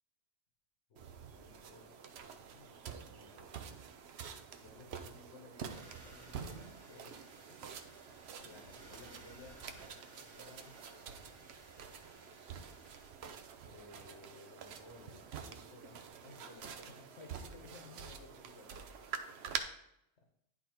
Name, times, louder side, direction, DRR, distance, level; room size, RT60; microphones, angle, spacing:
voice 1, 0.9-2.0 2.5-7.6 8.4-10.7 13.6-19.4, left 3 dB, 70° left, 1 dB, 1.3 m, -58 dB
sound 1, 1.0-19.6, right 7 dB, 65° right, 0.9 m, -47 dB
sound 2, 5.7-13.1, right 2 dB, 85° right, 1.8 m, -59 dB
9.9 x 4.2 x 4.4 m, 0.81 s
omnidirectional pair, 1.2 m